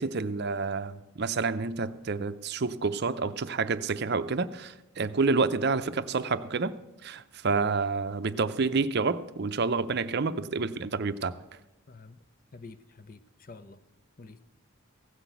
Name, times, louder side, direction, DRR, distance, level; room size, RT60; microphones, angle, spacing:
voice 1, 0.0-6.7 7.0-11.3, right 4 dB, 50° right, 12 dB, 0.6 m, -29 dB
voice 2, 11.9-12.2 12.5-13.8 14.2-14.4, left 3 dB, 40° left, 13 dB, 0.6 m, -48 dB
16.0 x 6.0 x 8.1 m, 0.95 s
head